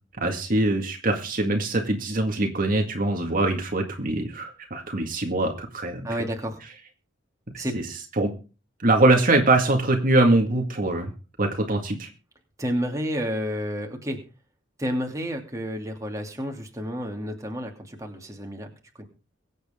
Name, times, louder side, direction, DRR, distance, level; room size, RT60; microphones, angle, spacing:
voice 1, 0.2-6.1 7.5-7.8 8.2-8.3 8.8-11.1 11.4-12.1, right 2 dB, 45° right, 3 dB, 2.1 m, -23 dB
voice 2, 6.0-6.6 7.6-7.8 12.6-14.2 14.8-18.7 19.0-19.1, equal, 15° right, 1 dB, 2.8 m, -30 dB
23.5 x 8.1 x 3.7 m, 0.34 s
head